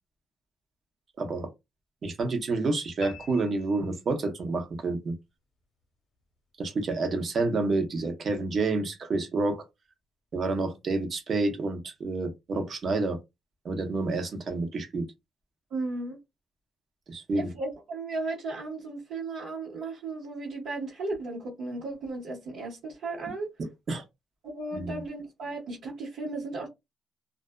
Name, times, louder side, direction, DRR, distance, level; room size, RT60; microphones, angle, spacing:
voice 1, 1.2-1.5 2.0-5.1 6.6-9.6 10.3-13.2 13.6-15.1 17.1-17.5 23.6-24.0 24.7-25.0, right 3 dB, 50° right, 0.8 m, -29 dB
sound 1, 3.0-4.5, left 6 dB, 60° left, 0.7 m, -46 dB
voice 2, 15.7-16.2 17.3-23.5 24.4-26.7, right 3 dB, 80° right, 1.1 m, -35 dB
2.4 x 2.3 x 2.2 m
cardioid pair, 90°, 0 cm